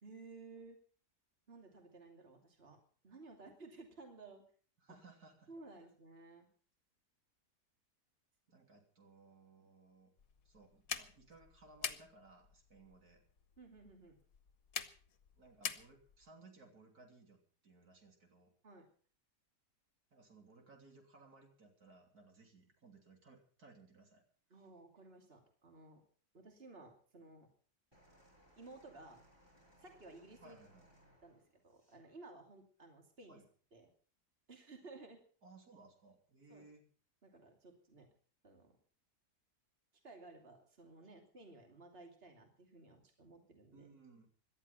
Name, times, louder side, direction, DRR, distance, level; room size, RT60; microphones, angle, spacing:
voice 1, 0.0-0.8 1.5-2.8 3.0-4.4 5.5-6.5 13.6-14.2 18.6-18.9 24.5-26.0 26.3-27.5 28.6-29.2 29.8-30.6 31.2-33.4 33.7-33.9 34.5-35.2 36.5-36.7 37.2-38.1 38.4-38.8 40.0-43.9, right 3 dB, 35° right, 3 dB, 2.9 m, -56 dB
voice 2, 4.8-5.5 8.5-10.1 10.5-13.2 15.4-18.5 20.1-24.2 30.4-30.9 33.3-33.5 35.4-36.9 43.7-44.3, right 3 dB, 65° right, 3 dB, 3.5 m, -61 dB
sound 1, 10.2-16.3, left 8 dB, 60° left, 1.5 m, -46 dB
sound 2, 27.9-32.0 32.9-33.1, equal, 15° right, 5.9 m, -67 dB
18.0 x 12.5 x 5.5 m, 0.44 s
omnidirectional pair, 1.7 m